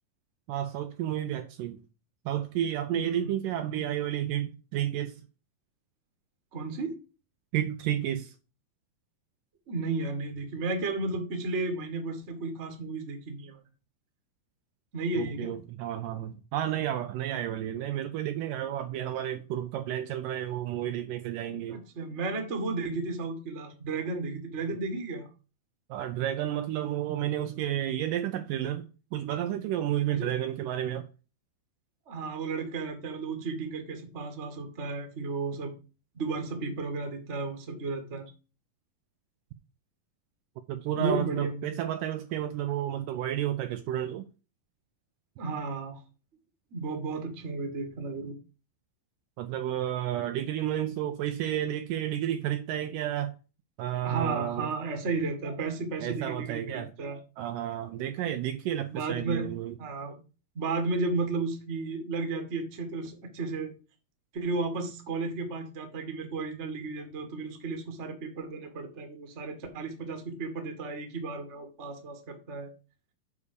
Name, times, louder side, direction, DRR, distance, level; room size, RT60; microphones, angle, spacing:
voice 1, 0.5-1.8 2.3-5.2 7.5-8.3 15.2-21.8 25.9-31.1 40.7-44.2 49.4-53.3 53.8-54.7 56.0-56.9 57.4-59.7, right 11 dB, 80° right, 2.0 m, -31 dB
voice 2, 2.9-3.3 6.5-7.0 9.7-13.6 14.9-15.6 21.5-25.3 30.1-30.3 32.1-35.7 36.1-38.3 40.9-41.8 45.4-46.0 46.7-48.3 54.0-57.2 58.9-59.5 59.8-60.2 60.5-63.7 64.3-72.7, right 3 dB, 35° right, 1.1 m, -33 dB
7.4 x 4.8 x 6.8 m
omnidirectional pair, 4.2 m